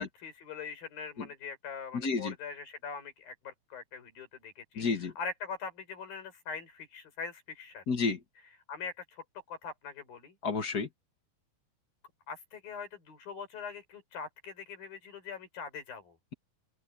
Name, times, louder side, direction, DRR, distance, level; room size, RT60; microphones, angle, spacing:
voice 1, 0.0-7.8 8.7-10.3 12.3-16.2, left 5 dB, 90° left, 6.6 m, -42 dB
voice 2, 1.9-2.3 4.8-5.1 7.9-8.2 10.4-10.9, left 4 dB, 40° left, 1.4 m, -30 dB
open air
omnidirectional pair, 4.0 m